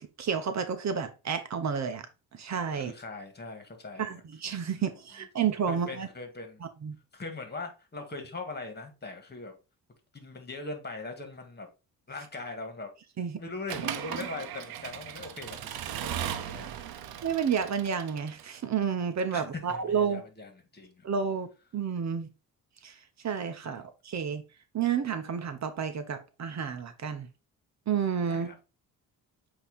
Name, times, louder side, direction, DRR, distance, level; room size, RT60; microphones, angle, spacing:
voice 1, 0.2-2.1 2.3-2.9 4.0-6.1 6.8-7.0 13.2-13.4 17.2-20.2 21.0-21.5 21.7-22.3 22.8-22.9 23.2-24.4 24.7-27.3 27.9-28.5, right 7 dB, 50° right, 0.8 m, -30 dB
voice 2, 2.8-4.2 4.7-4.9 5.7-6.6 7.1-9.5 10.1-11.7 12.1-12.9 13.4-17.1 19.3-21.1 23.6-23.8 28.2-28.6, left 3 dB, 30° left, 1.9 m, -41 dB
Accelerating revving vroom / Mechanisms, 13.7-18.6, right 10 dB, 80° right, 0.8 m, -37 dB
8.1 x 2.9 x 4.1 m
cardioid pair, 85°, 36 cm